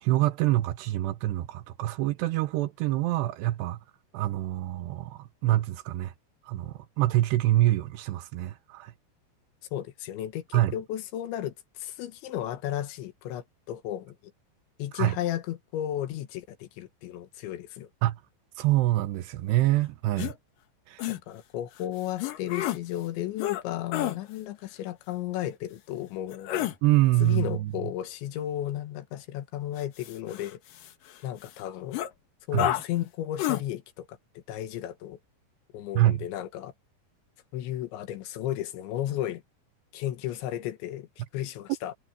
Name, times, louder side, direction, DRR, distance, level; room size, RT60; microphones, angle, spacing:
voice 1, 0.0-3.8 4.1-6.1 6.5-8.9 10.5-10.7 14.9-15.2 18.0-18.2 18.6-20.3 20.9-21.0 26.8-27.7 32.5-32.7 35.9-36.2, right 15 dB, 80° right, 2.8 m, -25 dB
voice 2, 9.7-14.2 14.8-17.9 21.1-26.7 27.2-30.6 31.2-32.0 32.5-34.1 34.4-35.2 35.7-36.7 37.5-39.4 39.9-41.9, left 12 dB, 85° left, 3.7 m, -34 dB
sound 1, 20.2-20.3 21.0-21.2 22.2-22.8 23.4-23.6 23.9-24.2 26.3-26.8 29.8-31.1 31.5-31.6 31.9-32.1 32.6-32.9 33.4-33.6, left 13 dB, 65° left, 2.5 m, -30 dB
omnidirectional pair, 5.2 m